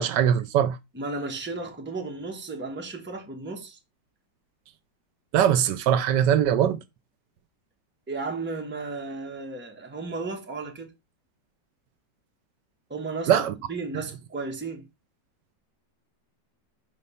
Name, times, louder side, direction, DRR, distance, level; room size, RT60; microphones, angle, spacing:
voice 1, 0.0-0.8 5.3-6.8 13.3-13.5, right 9 dB, 75° right, 1.2 m, -21 dB
voice 2, 0.9-3.8 8.1-10.9 12.9-14.9, right 3 dB, 10° right, 0.9 m, -34 dB
5.3 x 3.2 x 5.5 m
omnidirectional pair, 1.9 m